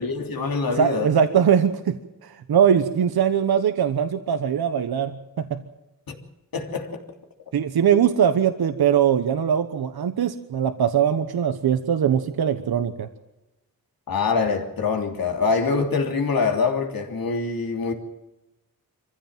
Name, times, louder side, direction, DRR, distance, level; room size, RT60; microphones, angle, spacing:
voice 1, 0.0-1.1 6.1-6.2 6.5-7.0 14.1-17.9, left 4 dB, 70° left, 3.3 m, -24 dB
voice 2, 0.7-5.6 7.5-13.1, right 8 dB, 90° right, 1.2 m, -21 dB
25.0 x 15.5 x 7.5 m
wide cardioid pair, 115°, 37 cm